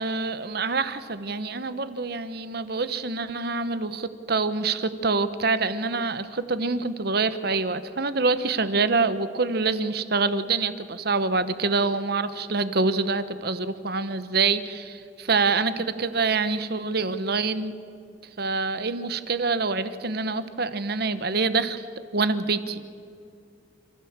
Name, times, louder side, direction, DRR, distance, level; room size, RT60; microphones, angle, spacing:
voice 1, 0.0-17.7 18.4-21.8 22.1-22.9, right 4 dB, 55° right, 12 dB, 1.0 m, -26 dB
28.0 x 15.0 x 7.4 m, 2.6 s
head